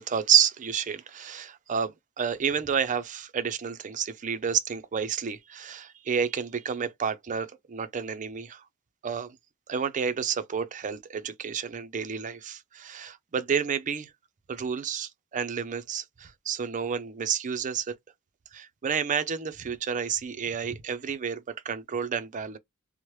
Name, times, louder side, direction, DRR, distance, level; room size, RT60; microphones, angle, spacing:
voice 1, 0.0-8.6 9.0-9.4 9.7-14.1 14.5-17.9 18.5-22.6, right 7 dB, 35° right, 0.4 m, -30 dB
3.0 x 2.0 x 3.0 m
head